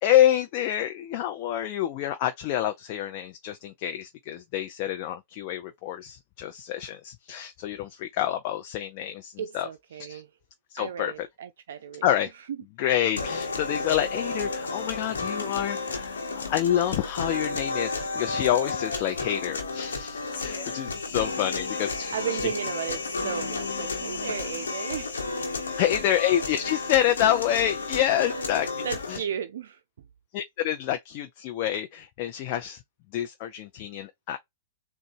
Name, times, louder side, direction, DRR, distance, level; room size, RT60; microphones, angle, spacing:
voice 1, 0.0-9.7 9.9-10.2 10.7-11.3 12.0-12.3 12.8-16.2 16.5-22.1 22.4-22.5 25.8-28.7 29.1-29.2 30.3-32.8 33.1-34.4, left 11 dB, 45° left, 0.6 m, -27 dB
voice 2, 9.4-10.3 10.8-12.1 22.1-25.2 28.8-29.8, right 9 dB, 70° right, 0.4 m, -34 dB
sound 1, 13.2-29.2, left 3 dB, 80° left, 1.1 m, -32 dB
3.9 x 2.4 x 4.4 m
hypercardioid pair, 110°, 0 cm